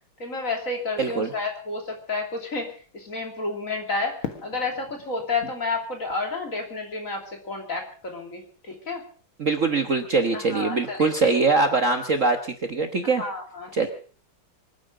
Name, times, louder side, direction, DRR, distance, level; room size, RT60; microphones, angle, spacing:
voice 1, 0.2-9.0 10.3-11.3 13.2-13.9, left 3 dB, 40° left, 3 dB, 3.3 m, -31 dB
voice 2, 1.0-1.3 9.4-13.2 13.7-13.9, right 4 dB, 45° right, 6 dB, 1.4 m, -22 dB
Fireworks, 4.2-7.3, left 8 dB, 80° left, 2.4 m, -40 dB
25.5 x 9.7 x 5.0 m, 0.41 s
omnidirectional pair, 2.3 m